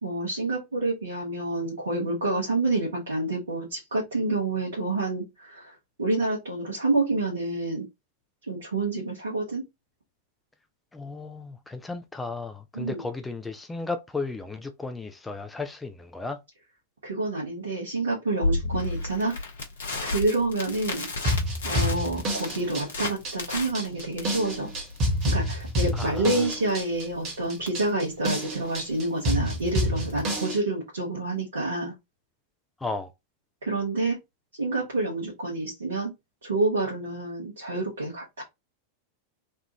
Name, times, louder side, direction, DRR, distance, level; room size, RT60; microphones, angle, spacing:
voice 1, 0.0-5.7 6.0-7.8 8.5-9.6 12.7-13.0 17.0-19.4 20.0-21.1 21.6-24.7 25.3-31.9 33.6-34.2 34.6-36.1 36.4-38.4, right 2 dB, 70° right, 1.3 m, -28 dB
voice 2, 10.9-16.4 25.9-26.5 32.8-33.1, left 3 dB, 10° left, 0.4 m, -34 dB
Crackle, 18.4-30.4, left 2 dB, 65° left, 0.9 m, -34 dB
sound 1, 21.2-30.6, equal, 35° right, 1.3 m, -28 dB
3.4 x 2.4 x 2.8 m
figure-of-eight pair, 90°, 0 cm